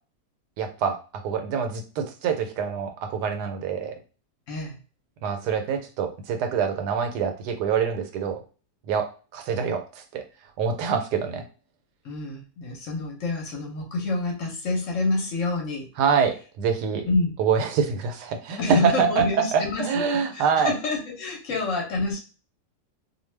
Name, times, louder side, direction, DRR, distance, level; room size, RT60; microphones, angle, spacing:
voice 1, 0.6-1.0 1.2-4.0 5.2-8.4 8.9-10.2 10.6-11.4 16.0-17.1 17.4-20.7, right 6 dB, 90° right, 6 dB, 1.2 m, -25 dB
voice 2, 12.0-15.9 17.1-17.3 18.6-20.1 20.3-22.2, left 3 dB, 60° left, 0 dB, 1.0 m, -27 dB
2.6 x 2.3 x 3.2 m, 0.36 s
omnidirectional pair, 1.7 m